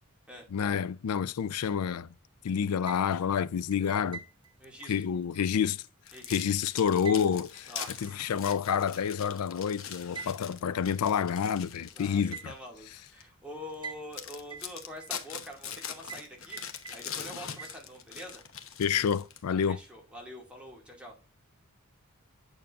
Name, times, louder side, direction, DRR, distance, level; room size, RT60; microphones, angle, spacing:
voice 1, 0.5-2.1 2.4-4.2 4.9-5.8 6.3-7.7 8.0-12.5 18.8-19.8, left 7 dB, 90° left, 0.4 m, -28 dB
sound 1, 2.6-3.3 3.7-6.6 7.0-8.3 8.7-8.8 10.1-10.4 10.8-10.9 11.4-11.5 12.3-12.8 13.8-14.2 14.5-15.4 16.1-16.3 16.5-17.2 17.6-18.3, right 6 dB, 20° right, 1.0 m, -45 dB
voice 2, 4.6-4.9 6.1-6.5 7.7-8.1 11.9-16.6 16.9-18.4 19.5-21.1, equal, 5° right, 2.2 m, -45 dB
sound 2, 6.1-12.5 13.0-13.2 13.7-13.8 14.1-19.6, left 8 dB, 65° left, 1.0 m, -42 dB
8.9 x 6.5 x 2.5 m
head